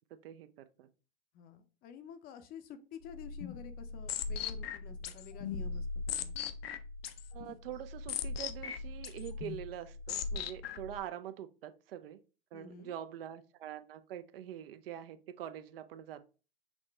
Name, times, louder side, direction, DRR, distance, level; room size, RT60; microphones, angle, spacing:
voice 1, 0.2-0.9 7.3-12.2 12.5-16.3, right 11 dB, 70° right, 11 dB, 0.5 m, -45 dB
voice 2, 1.3-5.8 6.2-6.3 12.5-12.9, left 7 dB, 30° left, 9 dB, 0.5 m, -50 dB
sound 1, 3.1-11.0, left 6 dB, 75° left, 0.6 m, -39 dB
6.0 x 2.1 x 3.3 m, 0.34 s
hypercardioid pair, 115°, 30 cm